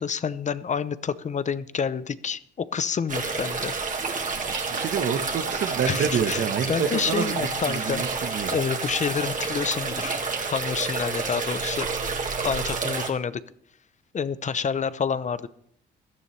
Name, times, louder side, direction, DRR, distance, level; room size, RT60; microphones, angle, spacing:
voice 1, 0.0-3.7 5.9-8.1 8.5-10.2 10.5-11.9 12.4-13.4 14.1-15.5, left 6 dB, 35° left, 15 dB, 0.7 m, -28 dB
sound 1, 3.1-13.1, right 4 dB, 40° right, 2.0 m, -29 dB
voice 2, 4.3-8.6, right 7 dB, 65° right, 9 dB, 1.2 m, -28 dB
17.0 x 12.0 x 3.3 m, 0.67 s
cardioid pair, 90°, 20 cm